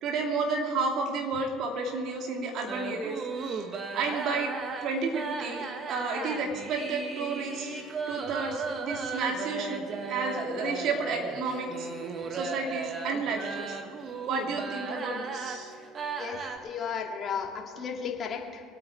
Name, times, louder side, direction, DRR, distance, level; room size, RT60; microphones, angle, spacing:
voice 1, 0.0-3.6 3.9-4.5 4.8-9.8 10.1-11.9 12.3-13.8 14.3-15.7, right 4 dB, 55° right, 1 dB, 3.0 m, -31 dB
sound 1, 2.7-16.6, right 4 dB, 40° right, 1.7 m, -36 dB
voice 2, 16.2-18.6, left 6 dB, 40° left, 0 dB, 2.6 m, -34 dB
24.5 x 9.1 x 4.6 m, 2.2 s
hypercardioid pair, 70°, 0 cm